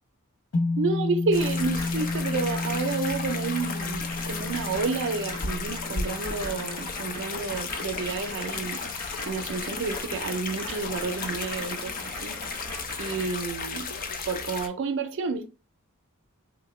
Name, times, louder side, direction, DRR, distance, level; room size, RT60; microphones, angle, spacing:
sound 1, 0.5-9.0, left 3 dB, 70° left, 0.7 m, -32 dB
voice 1, 0.8-8.8 9.3-12.4 13.0-13.9 14.3-15.5, right 4 dB, 60° right, 0.4 m, -30 dB
sound 2, 1.3-14.7, left 4 dB, 40° left, 0.4 m, -35 dB
sound 3, 1.4-13.3, left 1 dB, 25° left, 1.5 m, -40 dB
3.6 x 2.1 x 3.1 m
head